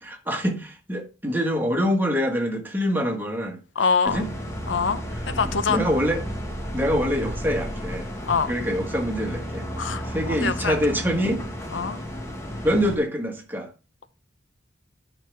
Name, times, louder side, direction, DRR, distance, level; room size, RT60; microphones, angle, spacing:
voice 1, 0.0-3.6 4.0-4.3 5.7-6.2 6.7-8.1 8.5-9.7 10.1-11.4 12.6-13.7, equal, 10° right, 1.5 m, -25 dB
voice 2, 3.8-4.2 4.7-5.8 8.3-8.5 9.8-10.8 11.7-12.0, left 5 dB, 85° left, 0.7 m, -24 dB
sound 1, 4.0-13.0, equal, 15° left, 1.3 m, -33 dB
11.0 x 5.3 x 3.4 m
head